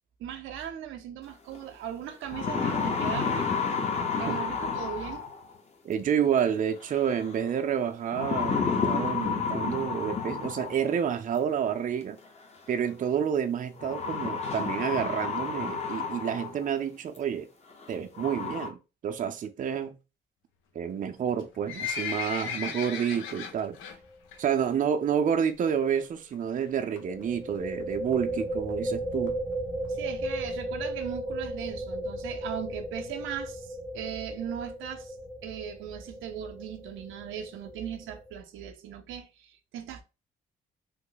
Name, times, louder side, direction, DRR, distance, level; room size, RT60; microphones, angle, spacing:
voice 1, 0.2-3.5 4.2-5.2 29.9-35.1 35.4-40.0, right 9 dB, 85° right, 0.6 m, -38 dB
sound 1, 1.5-1.6 2.1-5.5 6.9-7.3 8.1-10.9 12.2-12.3 13.8-16.7 17.2-17.3 17.8-17.9 18.2-18.7, left 5 dB, 35° left, 0.9 m, -30 dB
voice 2, 5.8-12.2 12.7-17.5 17.9-18.8 19.0-20.0 20.7-23.8 24.4-29.4, right 8 dB, 40° right, 0.4 m, -29 dB
Livestock farm animals working animals, 21.3-24.0 24.3-24.6 24.9-25.0 25.7-25.8 26.0-26.1 26.3-26.4 27.0-27.2 27.8-27.9 28.1-28.2 28.4-28.5 28.7-28.8 29.3-29.4 29.8-29.9 30.4-30.5, left 7 dB, 85° left, 0.7 m, -35 dB
sound 2, 23.9-24.2 24.4-24.5 27.0-38.4, right 1 dB, 5° left, 0.7 m, -35 dB
3.0 x 2.1 x 3.8 m
cardioid pair, 90°, 20 cm